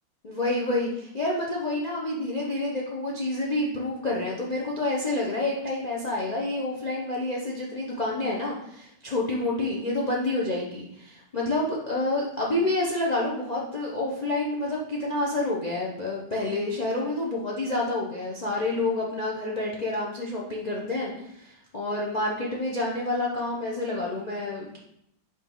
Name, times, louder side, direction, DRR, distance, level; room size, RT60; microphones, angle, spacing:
voice 1, 0.2-24.8, left 2 dB, 65° left, -3 dB, 0.4 m, -28 dB
5.6 x 4.6 x 3.8 m, 0.77 s
omnidirectional pair, 2.2 m